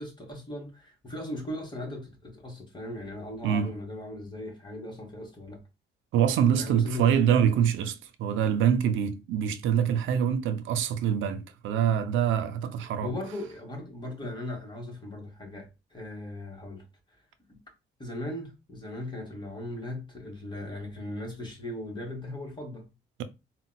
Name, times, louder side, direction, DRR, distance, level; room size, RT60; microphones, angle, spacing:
voice 1, 0.0-5.6 6.6-7.1 13.0-16.8 17.5-17.6 18.0-22.9, left 1 dB, 25° left, 1.1 m, -38 dB
voice 2, 6.1-13.1, right 8 dB, 80° right, 0.4 m, -25 dB
3.8 x 2.1 x 2.2 m
cardioid pair, 90°, 20 cm